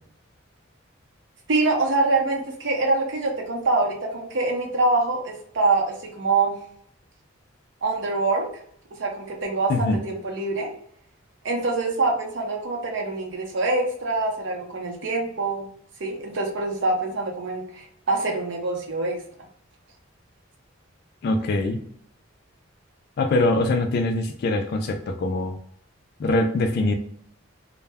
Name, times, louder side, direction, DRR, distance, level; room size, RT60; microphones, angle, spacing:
voice 1, 1.5-6.6 7.8-8.5 9.0-10.7 11.4-15.7 16.0-19.2, right 3 dB, 65° right, 1 dB, 0.6 m, -25 dB
voice 2, 9.7-10.0 21.2-21.8 23.2-25.6 26.2-26.9, left 2 dB, 55° left, 5 dB, 0.3 m, -23 dB
2.1 x 2.0 x 3.3 m, 0.64 s
head